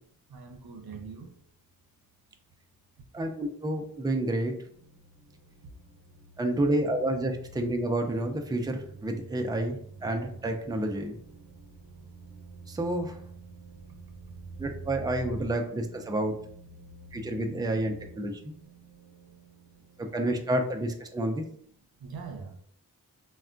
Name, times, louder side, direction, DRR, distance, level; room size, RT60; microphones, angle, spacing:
voice 1, 0.3-1.3 22.0-22.6, right 5 dB, 80° right, 4 dB, 0.6 m, -42 dB
voice 2, 3.1-4.5 6.4-11.2 12.7-13.2 14.6-16.4 17.1-18.4 20.0-21.4, right 1 dB, 10° right, 4 dB, 0.4 m, -29 dB
sound 1, 3.7-20.8, right 3 dB, 45° right, 0.8 m, -48 dB
3.3 x 2.2 x 2.5 m, 0.63 s
cardioid pair, 45°, 36 cm